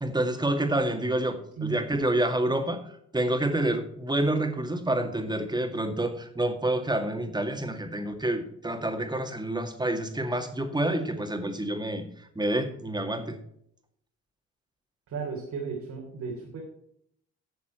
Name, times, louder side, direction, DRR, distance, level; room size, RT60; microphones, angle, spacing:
voice 1, 0.0-2.8 3.1-12.1 12.4-13.4, right 1 dB, 15° right, 5 dB, 2.1 m, -28 dB
voice 2, 15.1-16.6, right 5 dB, 75° right, -2 dB, 3.2 m, -35 dB
12.0 x 7.1 x 4.4 m, 0.70 s
cardioid pair, 90°, 30 cm